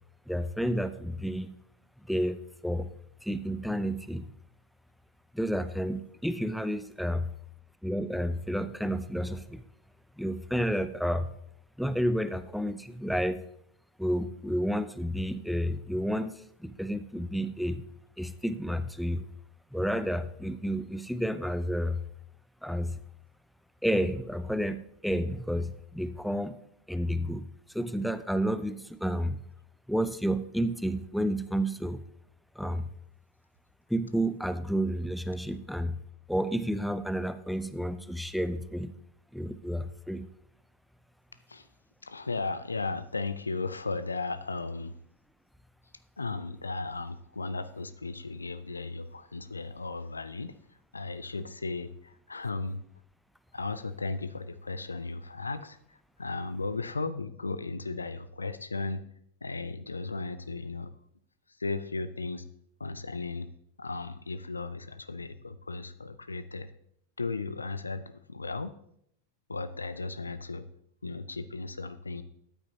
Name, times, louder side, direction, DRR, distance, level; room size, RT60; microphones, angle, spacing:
voice 1, 0.3-1.6 2.0-2.9 3.2-4.3 5.3-7.3 7.8-9.6 10.2-11.3 11.8-13.4 14.0-17.8 18.2-19.3 19.7-22.0 22.6-23.0 23.8-26.6 26.9-29.4 29.9-32.0 32.6-32.9 33.9-36.0 36.3-38.9 39.3-40.3, equal, ahead, 13 dB, 0.5 m, -31 dB
voice 2, 42.0-45.0 46.2-50.5 50.9-52.8 53.5-59.0 59.4-60.9 61.6-62.4 62.8-63.5 63.8-66.7 67.2-68.7 69.5-70.7 71.0-72.2, left 3 dB, 80° left, 14 dB, 0.5 m, -35 dB
13.5 x 8.8 x 2.8 m, 0.72 s
figure-of-eight pair, 90°, 0 cm